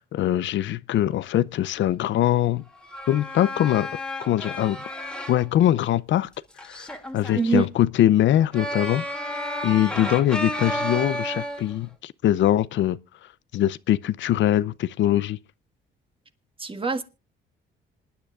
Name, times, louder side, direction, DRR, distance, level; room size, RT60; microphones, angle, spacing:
voice 1, 0.0-2.6 3.1-3.9 4.2-4.8 5.3-6.3 6.6-13.0 13.5-15.4, left 12 dB, 70° left, 0.5 m, -22 dB
sound 1, 2.7-5.4 6.6-7.5 8.5-11.8, left 1 dB, 5° left, 2.4 m, -32 dB
voice 2, 7.3-7.7 10.0-10.2 16.6-17.0, right 4 dB, 25° right, 1.7 m, -24 dB
26.5 x 10.5 x 2.4 m
cardioid pair, 90°, 20 cm